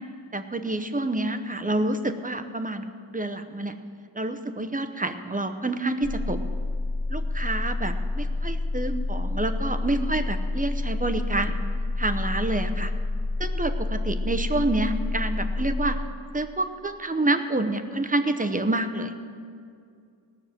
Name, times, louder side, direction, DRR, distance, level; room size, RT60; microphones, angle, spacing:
voice 1, 0.3-3.7 4.1-6.4 7.1-11.6 12.0-12.9 13.4-16.0 16.3-19.1, right 2 dB, 20° right, 8 dB, 0.8 m, -28 dB
sound 1, 6.0-16.0, left 2 dB, 65° left, 1.9 m, -28 dB
17.5 x 6.6 x 7.5 m, 2.3 s
wide cardioid pair, 90°, 45 cm